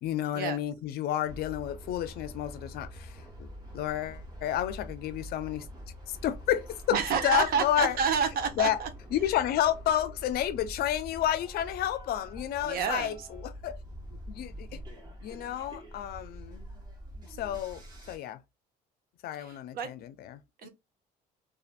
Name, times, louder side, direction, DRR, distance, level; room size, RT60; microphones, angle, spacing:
voice 1, 0.0-5.7 6.1-7.0 7.2-8.0 8.6-8.8 9.1-13.8 14.1-14.8 15.2-16.6 17.2-17.8 18.1-18.4 19.2-20.7, left 11 dB, 65° left, 0.4 m, -31 dB
sound 1, 1.3-18.2, equal, 25° right, 1.1 m, -45 dB
voice 2, 6.9-8.9 12.6-13.2 19.4-19.9 20.6-20.7, right 6 dB, 65° right, 0.7 m, -29 dB
2.5 x 2.4 x 2.3 m
cardioid pair, 110°, 17 cm